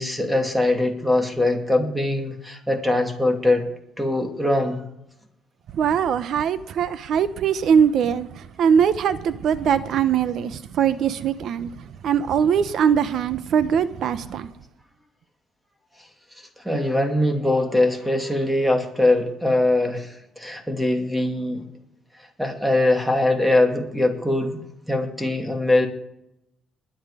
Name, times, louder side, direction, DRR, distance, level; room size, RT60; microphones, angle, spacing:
voice 1, 0.0-3.7 4.0-4.8 16.4-21.7 22.4-24.6 24.9-25.9, left 1 dB, 5° right, 2.5 m, -22 dB
voice 2, 5.7-14.5, right 7 dB, 70° right, 0.9 m, -21 dB
21.0 x 8.0 x 5.0 m
cardioid pair, 95°, 0 cm